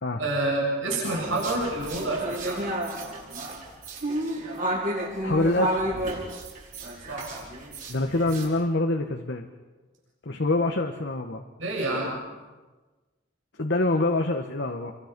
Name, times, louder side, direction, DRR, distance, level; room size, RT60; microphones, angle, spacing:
voice 1, 0.2-2.6 7.1-7.5 11.6-12.2, right 2 dB, 80° right, -3 dB, 7.7 m, -28 dB
sound 1, 1.0-8.5, right 1 dB, 45° right, 5.9 m, -31 dB
voice 2, 5.2-5.8 7.9-9.5 10.2-11.4 13.6-14.9, left 2 dB, 60° left, 3 dB, 1.4 m, -25 dB
29.5 x 24.5 x 5.4 m, 1.3 s
head